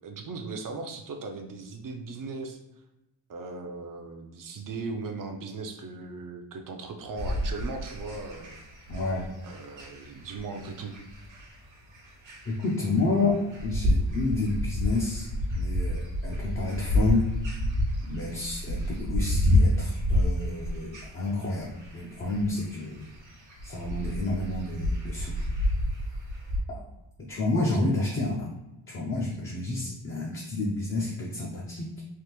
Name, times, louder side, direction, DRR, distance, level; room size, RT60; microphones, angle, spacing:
voice 1, 0.0-2.6 3.3-8.6 9.4-11.0 27.5-27.9, right 3 dB, 45° right, 4 dB, 0.4 m, -38 dB
sound 1, 7.2-26.6, left 1 dB, 70° right, 1.0 m, -29 dB
voice 2, 8.9-9.3 12.5-15.3 15.5-17.3 18.0-23.0 23.6-25.5 26.7-26.8 27.3-28.5 28.9-32.0, left 2 dB, 30° left, -4 dB, 0.4 m, -30 dB
3.5 x 2.4 x 2.9 m, 0.96 s
wide cardioid pair, 175°, 47 cm